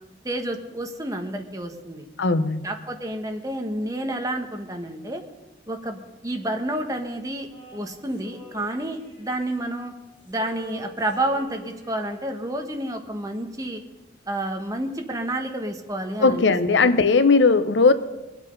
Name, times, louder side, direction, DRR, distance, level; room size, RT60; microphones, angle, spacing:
voice 1, 0.2-2.0 2.6-5.2 5.7-9.9 10.3-13.8 14.3-16.9, right 1 dB, 20° right, 4 dB, 1.3 m, -30 dB
voice 2, 2.2-2.7 16.2-17.9, left 4 dB, 75° left, 12 dB, 0.8 m, -18 dB
Male singing, 7.5-9.9 10.2-12.4, left 3 dB, 30° left, 3.2 m, -46 dB
22.0 x 8.2 x 5.4 m, 1.0 s
head